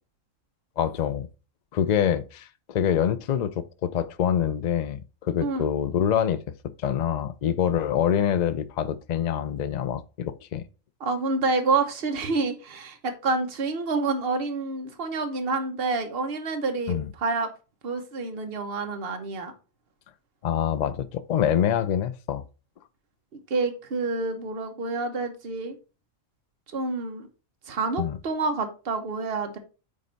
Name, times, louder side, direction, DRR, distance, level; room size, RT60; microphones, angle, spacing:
voice 1, 0.8-1.3 1.7-6.4 6.8-10.6 16.9-17.1 20.4-22.4 28.0-28.2, left 9 dB, 75° left, 0.4 m, -25 dB
voice 2, 11.0-17.5 17.8-19.5 23.3-25.8 26.7-27.3 27.7-29.6, right 3 dB, 50° right, 1.2 m, -28 dB
8.9 x 3.3 x 4.0 m
omnidirectional pair, 1.4 m